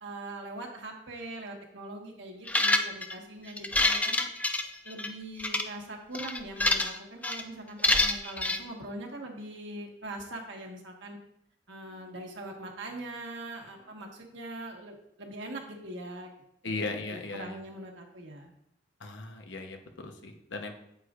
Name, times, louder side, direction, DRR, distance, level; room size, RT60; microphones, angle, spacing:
voice 1, 0.0-4.2 4.8-11.2 11.7-16.3 16.6-16.8 17.1-18.5, right 1 dB, 75° right, 1 dB, 1.4 m, -42 dB
sound 1, 2.5-3.1 3.6-5.1 5.4-5.6 6.1-7.0 7.2-7.4 7.8-8.6, left 2 dB, 10° left, 0.3 m, -26 dB
voice 2, 16.6-17.6 19.0-20.7, left 3 dB, 75° left, 4 dB, 1.0 m, -37 dB
9.1 x 8.4 x 2.5 m, 0.76 s
head